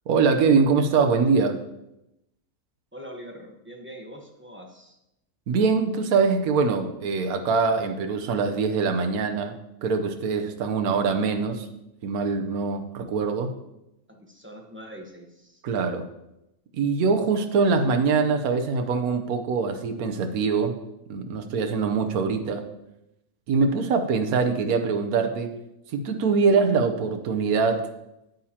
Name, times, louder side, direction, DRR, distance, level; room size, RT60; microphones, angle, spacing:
voice 1, 0.1-1.6 5.5-9.5 9.8-11.6 12.0-13.5 15.6-16.1 16.8-20.7 21.1-22.7 23.5-25.5 25.9-27.9, right 5 dB, 80° right, 5 dB, 1.3 m, -23 dB
voice 2, 2.9-5.0 14.1-15.6, equal, 10° right, 1 dB, 0.9 m, -43 dB
9.3 x 8.9 x 2.9 m, 0.89 s
omnidirectional pair, 1.5 m